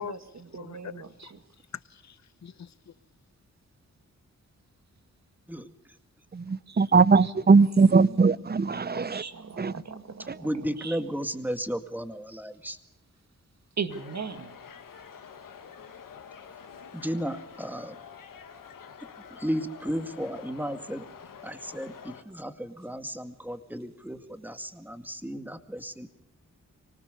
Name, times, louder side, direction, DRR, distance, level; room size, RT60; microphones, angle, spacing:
voice 1, 0.0-1.4 6.7-6.9 7.2-7.5 8.6-10.5 10.8-11.0 13.8-14.7, right 5 dB, 55° right, 2.1 m, -39 dB
voice 2, 0.5-1.3 1.7-2.9, left 7 dB, 60° left, 0.9 m, -42 dB
voice 3, 6.3-9.2 9.6-9.7 10.3-10.4, right 4 dB, 30° right, 0.8 m, -20 dB
voice 4, 7.9-8.2 10.4-12.8 16.9-18.0 19.3-21.1 21.4-26.1, equal, 5° right, 2.0 m, -34 dB
sound 1, 13.9-22.2, left 7 dB, 85° left, 1.6 m, -47 dB
25.0 x 18.5 x 6.8 m
cardioid pair, 45°, 32 cm